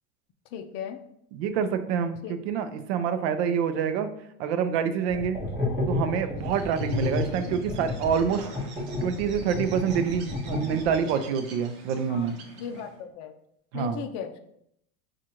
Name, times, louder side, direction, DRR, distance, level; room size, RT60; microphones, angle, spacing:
voice 1, 0.5-1.0 2.2-2.4 12.1-12.3 12.6-13.3 13.7-14.4, left 7 dB, 45° left, 7 dB, 0.5 m, -36 dB
voice 2, 1.3-4.1 4.4-5.4 5.9-8.5 9.0-12.4 13.7-14.0, right 7 dB, 75° right, 9 dB, 0.6 m, -27 dB
sound 1, 5.1-11.2, left 2 dB, 5° right, 1.6 m, -31 dB
Bird, 6.4-13.0, right 3 dB, 60° right, 0.9 m, -46 dB
6.1 x 2.5 x 2.9 m, 0.73 s
supercardioid pair, 150°, 33 cm